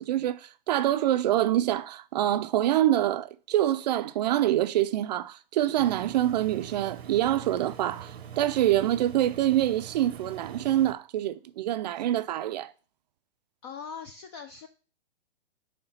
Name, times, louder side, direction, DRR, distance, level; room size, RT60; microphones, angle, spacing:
voice 1, 0.0-12.7, right 13 dB, 45° right, 0.4 m, -26 dB
Engine, 5.8-10.9, right 8 dB, 90° right, 0.8 m, -43 dB
voice 2, 13.6-14.7, left 6 dB, 25° left, 0.4 m, -41 dB
5.6 x 3.3 x 5.6 m
hypercardioid pair, 135°, 31 cm